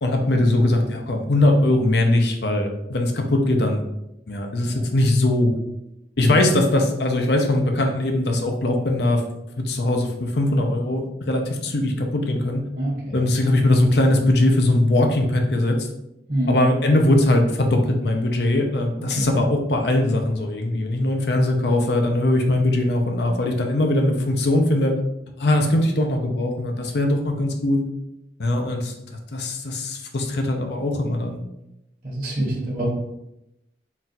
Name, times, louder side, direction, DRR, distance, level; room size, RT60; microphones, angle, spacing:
voice 1, 0.0-3.8 4.3-5.5 6.2-9.2 9.6-12.6 13.1-15.8 16.5-24.9 25.4-27.8 28.4-31.4, left 1 dB, 70° left, 3 dB, 0.6 m, -20 dB
voice 2, 12.8-13.2 16.3-16.6 19.1-19.3 32.0-32.8, right 1 dB, 45° right, -6 dB, 1.1 m, -25 dB
4.0 x 2.4 x 4.1 m, 0.85 s
head